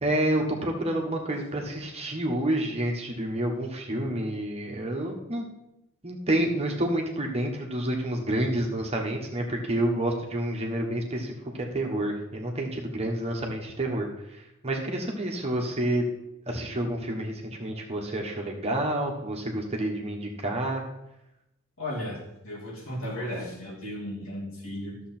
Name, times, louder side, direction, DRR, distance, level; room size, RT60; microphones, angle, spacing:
voice 1, 0.0-5.4 6.0-16.0 16.5-20.8, right 1 dB, 30° right, 1 dB, 1.4 m, -29 dB
voice 2, 21.8-25.0, left 1 dB, 65° left, -3 dB, 2.8 m, -35 dB
12.5 x 7.1 x 4.4 m, 0.90 s
head